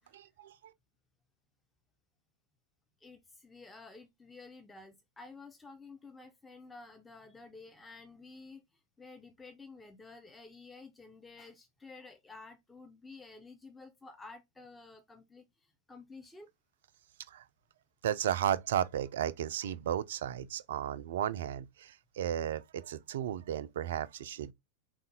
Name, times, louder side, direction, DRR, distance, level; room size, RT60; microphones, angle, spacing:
voice 1, 0.1-0.5 17.3-17.4 18.0-24.5, right 10 dB, 60° right, 0.3 m, -34 dB
voice 2, 3.0-8.6 9.0-16.5, left 3 dB, 10° left, 0.5 m, -52 dB
3.7 x 2.4 x 2.7 m
figure-of-eight pair, 90°, 0 cm